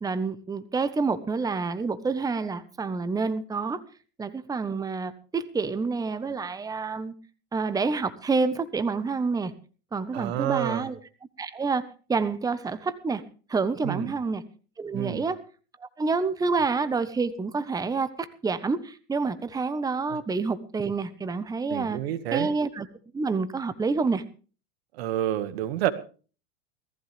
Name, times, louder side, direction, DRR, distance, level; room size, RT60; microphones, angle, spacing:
voice 1, 0.0-3.8 4.2-7.1 7.5-9.5 9.9-11.0 11.4-11.8 12.1-13.2 13.5-14.4 14.8-15.4 15.8-22.0 22.3-22.9 23.1-24.2, right 4 dB, 10° right, 13 dB, 1.2 m, -28 dB
voice 2, 10.1-10.9 13.8-14.1 14.9-15.3 20.1-20.2 21.7-22.5 24.9-25.9, right 13 dB, 75° right, 13 dB, 1.8 m, -29 dB
18.0 x 15.0 x 3.4 m, 0.37 s
supercardioid pair, 120°, 31 cm